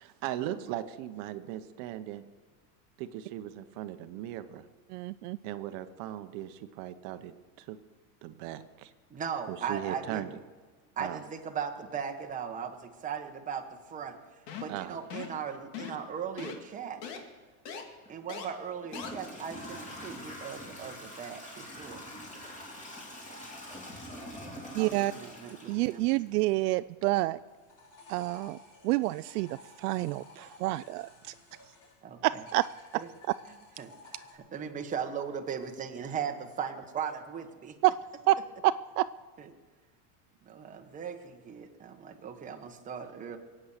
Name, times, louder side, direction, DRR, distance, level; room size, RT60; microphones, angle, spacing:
voice 1, 0.0-2.2 3.0-4.6 5.4-7.8 8.2-8.9 9.5-10.3 11.0-11.2 14.7-15.0, right 12 dB, 45° right, 10 dB, 0.9 m, -38 dB
voice 2, 4.9-5.4 24.7-25.1 25.7-27.4 28.1-28.6 28.8-31.3 32.2-32.7 37.8-38.0 38.3-38.4 38.6-39.1, right 18 dB, 70° right, 14 dB, 0.5 m, -28 dB
voice 3, 9.1-10.3 11.0-17.0 18.1-22.0 24.8-26.0 32.0-32.4 32.9-33.1 33.8-33.9 34.3-37.8 39.4-39.5 40.4-43.4, right 7 dB, 15° right, 4 dB, 1.1 m, -38 dB
sound 1, 14.5-14.8 15.1-15.4 15.7-16.1 16.4-16.6 17.0-17.2 17.7-17.8 18.3-18.5 18.9-19.1, left 7 dB, 80° left, 2.5 m, -39 dB
Toilet flush / Trickle dribble, 18.0-18.1 18.8-26.6, left 1 dB, 15° left, 3.0 m, -44 dB
sound 2, 27.4-32.0 32.3-34.4, left 2 dB, 40° left, 5.1 m, -54 dB
23.0 x 8.7 x 6.6 m, 1.4 s
supercardioid pair, 160°, 47 cm